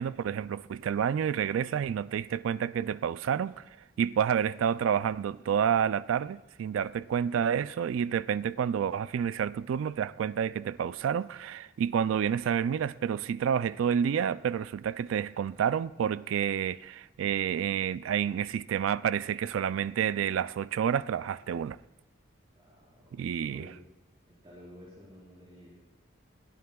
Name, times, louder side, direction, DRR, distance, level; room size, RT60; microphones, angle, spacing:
voice 1, 0.0-3.6 4.0-21.8 23.1-23.7, right 8 dB, 80° right, 0.3 m, -29 dB
voice 2, 22.5-23.8 24.3-25.7, equal, 30° right, 4.5 m, -52 dB
21.0 x 13.0 x 2.3 m
head